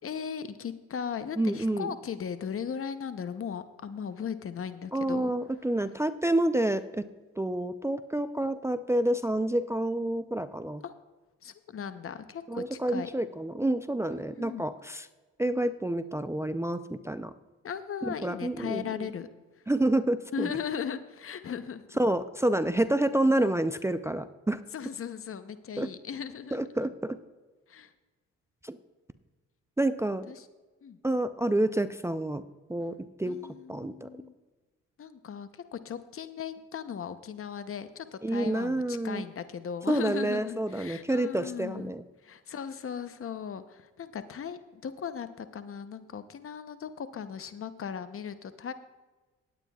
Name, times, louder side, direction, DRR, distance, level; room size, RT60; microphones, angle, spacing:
voice 1, 0.0-5.3 10.8-10.9 11.4-13.1 14.1-14.6 17.6-19.3 20.3-21.9 24.7-26.9 27.7-27.9 30.3-30.5 30.8-31.0 33.2-34.3 35.0-41.9 42.2-48.7, left 7 dB, 45° left, 11 dB, 0.8 m, -37 dB
voice 2, 1.4-1.9 4.9-7.0 7.4-10.8 12.5-15.1 15.4-17.3 18.0-19.1 19.7-20.5 22.0-24.6 25.8-25.9 26.5-27.2 28.6-28.8 29.8-30.3 31.0-32.4 32.7-34.1 38.2-39.3 39.9-42.0, right 1 dB, 10° right, 11 dB, 0.5 m, -28 dB
19.0 x 9.1 x 2.3 m, 1.2 s
supercardioid pair, 65°, 31 cm